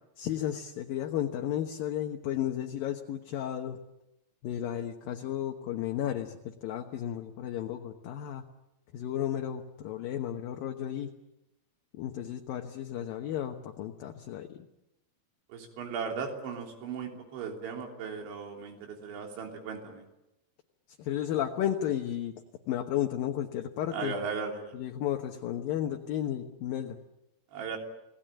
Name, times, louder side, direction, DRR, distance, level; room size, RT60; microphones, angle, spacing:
voice 1, 0.2-3.8 4.4-8.4 8.9-11.1 11.9-14.6 21.0-22.3 22.7-24.1 24.7-27.0, left 11 dB, 70° left, 4 dB, 2.4 m, -33 dB
voice 2, 15.5-20.0 23.9-24.8 27.5-27.8, right 5 dB, 75° right, 3 dB, 5.6 m, -37 dB
29.0 x 19.0 x 9.0 m, 0.92 s
omnidirectional pair, 5.3 m